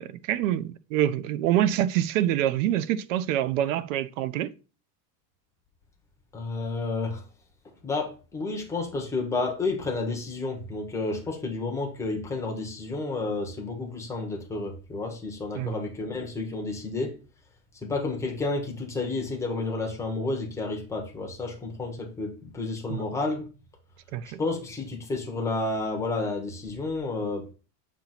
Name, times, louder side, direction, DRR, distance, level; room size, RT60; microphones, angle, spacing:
voice 1, 0.0-4.5 15.6-15.7 22.9-23.0 24.1-24.4, right 12 dB, 55° right, 0.5 m, -26 dB
voice 2, 6.3-7.3 7.8-17.1 17.8-23.5 24.2-27.5, left 3 dB, 5° left, 0.7 m, -31 dB
7.4 x 2.9 x 5.6 m
supercardioid pair, 175°, 49 cm